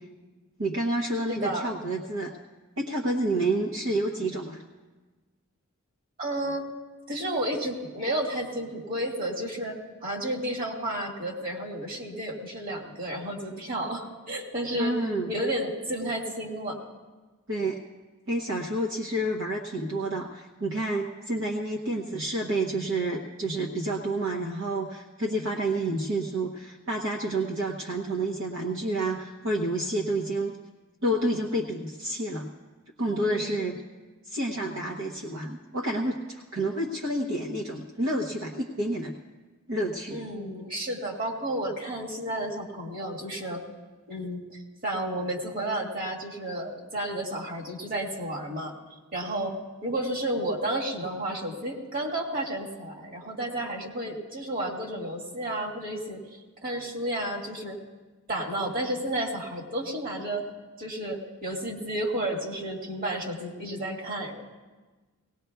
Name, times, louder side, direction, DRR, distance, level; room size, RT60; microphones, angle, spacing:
voice 1, 0.6-2.3 2.8-4.6 14.8-15.3 17.5-17.8 18.3-30.5 31.0-32.5 33.0-33.8 34.2-39.1 39.7-40.2, right 1 dB, 65° right, -1 dB, 0.9 m, -29 dB
voice 2, 1.3-1.7 6.2-6.7 7.1-15.0 15.3-16.8 33.3-33.8 40.1-43.6 44.1-48.7 49.1-56.2 56.6-57.8 58.3-60.5 60.8-64.3, right 1 dB, 45° right, 0 dB, 2.0 m, -32 dB
19.0 x 18.5 x 2.3 m, 1.3 s
head